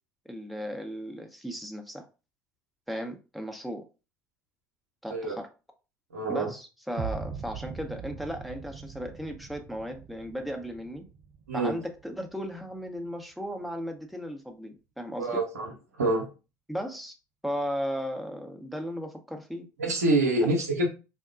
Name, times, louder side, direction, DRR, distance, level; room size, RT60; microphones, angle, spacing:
voice 1, 0.3-2.1 2.9-3.9 5.0-5.5 6.3-11.0 11.5-15.4 16.7-17.1 17.4-19.6 20.4-20.6, equal, ahead, 0.8 m, -36 dB
voice 2, 6.1-6.5 11.5-11.7 15.2-16.3 19.8-20.9, right 2 dB, 85° right, 0.7 m, -26 dB
sound 1, 7.0-13.0, right 6 dB, 50° right, 0.5 m, -41 dB
4.3 x 2.2 x 2.4 m
hypercardioid pair, 60°, 8 cm